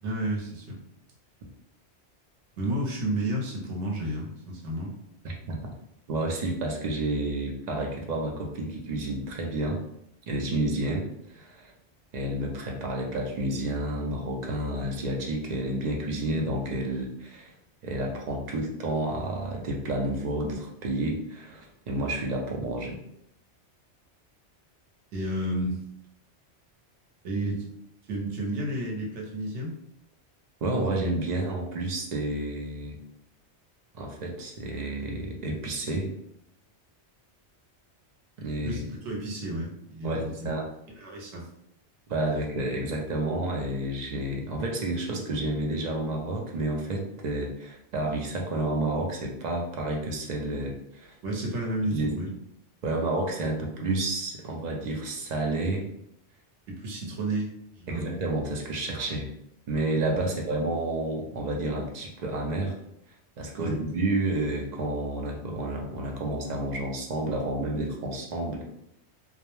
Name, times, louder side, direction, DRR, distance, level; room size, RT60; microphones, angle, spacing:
voice 1, 0.0-0.8 2.6-4.9 25.1-25.8 27.2-27.6 28.1-29.8 38.6-40.5 40.9-41.5 51.2-52.3 56.7-57.5 57.8-58.2 60.3-60.4 63.6-63.8, right 1 dB, 90° right, -1 dB, 0.9 m, -31 dB
voice 2, 5.2-5.6 6.1-9.8 10.3-11.7 12.1-17.5 17.8-23.0 30.6-33.0 33.9-36.1 38.4-38.8 40.0-40.7 42.1-51.1 51.9-52.2 52.8-55.9 57.9-59.3 59.7-62.8 63.4-68.6, right 2 dB, 60° right, 0 dB, 0.4 m, -30 dB
2.2 x 2.0 x 2.9 m, 0.77 s
omnidirectional pair, 1.2 m